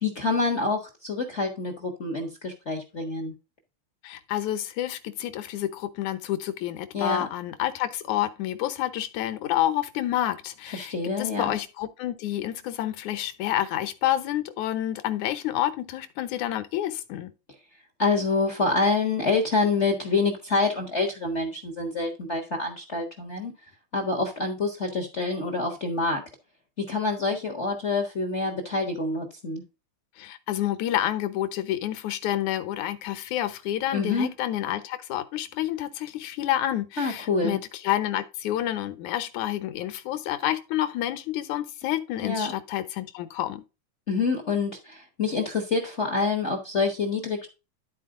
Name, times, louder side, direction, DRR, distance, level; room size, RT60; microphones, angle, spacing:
voice 1, 0.0-3.3 6.9-7.3 10.7-11.6 18.0-23.5 23.9-26.2 26.9-29.6 33.9-34.3 37.0-37.6 42.2-42.5 44.1-47.5, left 3 dB, 55° left, 0.7 m, -27 dB
voice 2, 4.0-17.3 30.2-43.6, left 13 dB, 75° left, 2.2 m, -29 dB
12.0 x 4.4 x 3.7 m
omnidirectional pair, 3.5 m